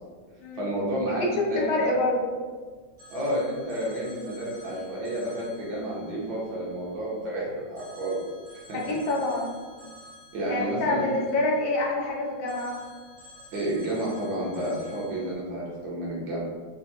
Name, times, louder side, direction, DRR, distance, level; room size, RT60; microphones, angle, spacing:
voice 1, 0.6-1.9 3.1-8.2 8.7-8.8 10.3-11.1 13.5-16.4, right 1 dB, 85° right, -6 dB, 1.8 m, -30 dB
voice 2, 1.2-2.3 8.7-9.5 10.5-12.8, left 2 dB, 85° left, -2 dB, 1.5 m, -26 dB
Telephone, 3.0-7.3 7.8-12.0 12.5-15.3, left 1 dB, 20° right, 0.8 m, -51 dB
4.8 x 2.1 x 2.8 m, 1.5 s
omnidirectional pair, 2.1 m